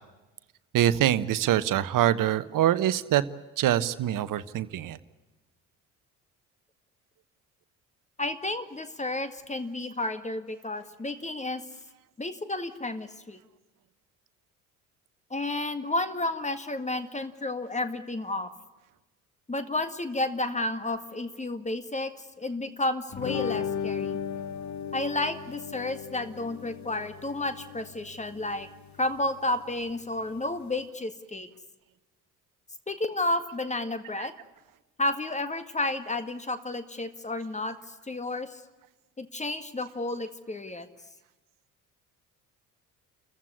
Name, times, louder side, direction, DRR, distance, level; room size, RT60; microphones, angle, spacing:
voice 1, 0.7-3.2 3.6-5.0 34.2-34.3, right 12 dB, 50° right, 14 dB, 1.2 m, -24 dB
voice 2, 8.2-11.6 12.2-13.4 15.3-18.5 19.5-24.2 24.9-28.7 29.0-31.5 32.9-34.3 35.0-38.6 39.2-40.9, left 2 dB, 15° left, 11 dB, 1.9 m, -31 dB
sound 1, 23.1-30.8, left 7 dB, 40° left, 1.2 m, -37 dB
28.5 x 15.0 x 9.9 m, 1.2 s
figure-of-eight pair, 55°, 43 cm